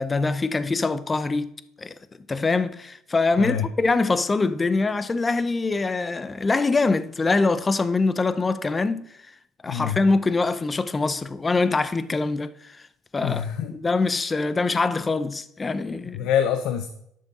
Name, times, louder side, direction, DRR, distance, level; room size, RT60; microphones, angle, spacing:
voice 1, 0.0-1.5 1.8-1.9 2.3-9.0 9.6-12.8 13.1-13.4 13.7-16.3, left 3 dB, 25° left, 0.7 m, -24 dB
voice 2, 9.7-10.0 13.2-13.7 16.1-16.9, left 9 dB, 70° left, 0.7 m, -25 dB
10.5 x 6.5 x 4.2 m
supercardioid pair, 75°, 0 cm